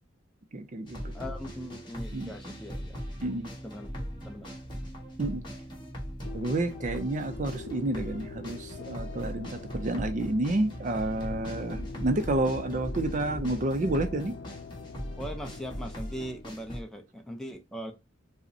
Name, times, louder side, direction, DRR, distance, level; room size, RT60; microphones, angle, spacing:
voice 1, 0.5-1.2 2.1-2.3 3.2-3.5 5.2-5.4 6.3-14.3, right 2 dB, 40° right, 0.4 m, -30 dB
sound 1, 0.8-16.8, equal, 25° left, 1.3 m, -39 dB
voice 2, 1.1-3.0 3.6-3.9 4.2-4.6 15.2-17.9, equal, ahead, 0.6 m, -40 dB
sound 2, 6.2-16.3, left 4 dB, 70° left, 0.3 m, -44 dB
5.0 x 2.1 x 2.6 m
head